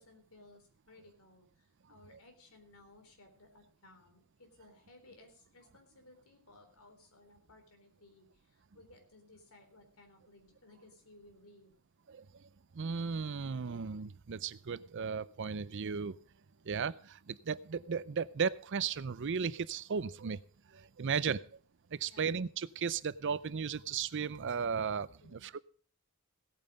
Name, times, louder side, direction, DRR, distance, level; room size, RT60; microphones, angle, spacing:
voice 1, 0.0-11.7 21.0-21.5 22.0-22.4 25.2-25.5, left 2 dB, 70° left, 5 dB, 3.9 m, -60 dB
voice 2, 12.1-16.2 16.6-20.4 20.7-21.4 21.9-25.6, right 6 dB, 55° right, 17 dB, 0.5 m, -35 dB
17.0 x 9.0 x 5.2 m, 0.42 s
head